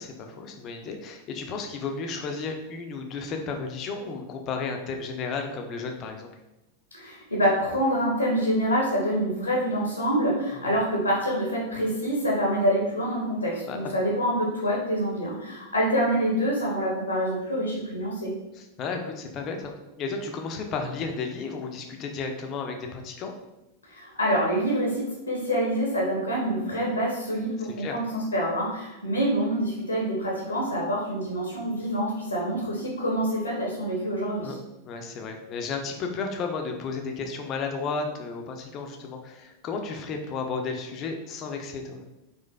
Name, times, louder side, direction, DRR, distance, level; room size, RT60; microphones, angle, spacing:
voice 1, 0.0-6.3 10.5-10.8 13.7-13.8 18.5-23.3 27.8-28.0 34.4-34.6 34.8-42.0, left 4 dB, 35° left, 4 dB, 0.4 m, -33 dB
voice 2, 6.9-18.3 23.9-34.5, equal, 80° left, -3 dB, 0.7 m, -26 dB
3.9 x 2.5 x 2.2 m, 0.94 s
figure-of-eight pair, 90°, 0 cm